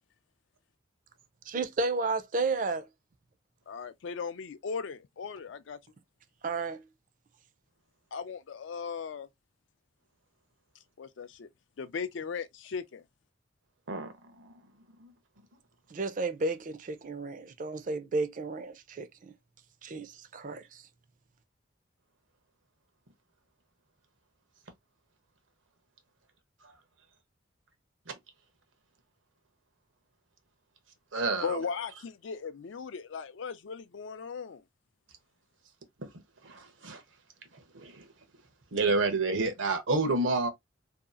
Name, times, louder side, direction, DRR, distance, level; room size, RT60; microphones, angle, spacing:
voice 1, 1.5-2.9 6.4-6.8 15.9-19.3 19.8-20.8, right 3 dB, 40° right, 0.4 m, -32 dB
voice 2, 3.7-5.8 8.1-9.3 11.0-11.5 11.8-13.0 31.4-34.6, left 5 dB, 75° left, 0.4 m, -37 dB
voice 3, 31.1-31.6 36.4-37.0 37.7-38.0 38.7-40.5, right 3 dB, 85° right, 0.8 m, -29 dB
2.7 x 2.3 x 2.4 m
head